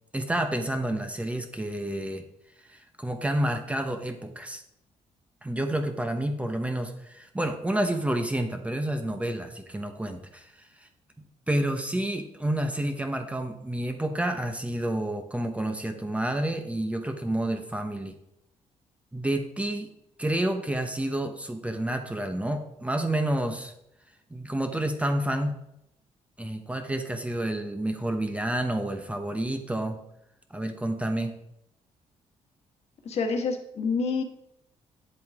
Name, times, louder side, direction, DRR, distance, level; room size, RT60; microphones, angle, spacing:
voice 1, 0.1-2.2 2.6-4.6 5.4-10.9 11.5-18.2 19.1-19.9 20.2-23.7 24.3-25.5 26.4-30.0 30.5-31.3, right 1 dB, 10° right, 5 dB, 1.0 m, -29 dB
voice 2, 33.0-34.2, left 4 dB, 60° left, 5 dB, 1.6 m, -27 dB
9.2 x 7.9 x 3.6 m, 0.79 s
cardioid pair, 110°, 12 cm